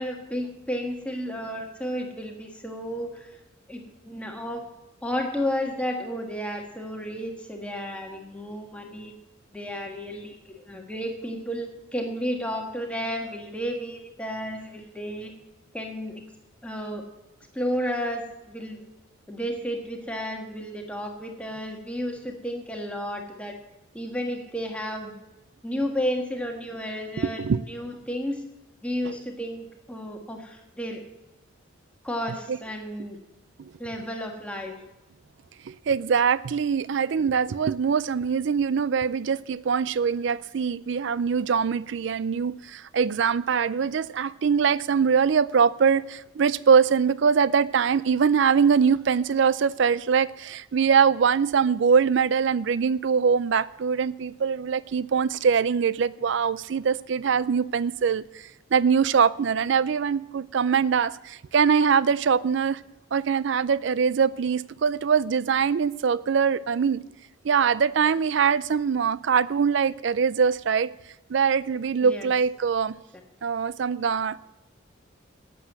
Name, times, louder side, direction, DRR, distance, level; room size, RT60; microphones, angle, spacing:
voice 1, 0.0-3.4 3.7-4.6 5.0-9.1 9.5-15.3 15.7-16.2 16.6-17.0 17.5-18.8 19.3-23.5 23.9-25.1 25.6-28.4 28.8-31.0 32.0-33.2 33.8-34.7 72.0-72.3, equal, 5° left, 1.4 m, -32 dB
voice 2, 27.2-27.6 29.1-29.2 32.5-32.6 33.6-33.7 35.7-62.8 63.1-67.0 67.4-70.9 71.3-73.0 73.4-74.5, right 6 dB, 60° right, 0.4 m, -23 dB
11.5 x 7.7 x 7.5 m
head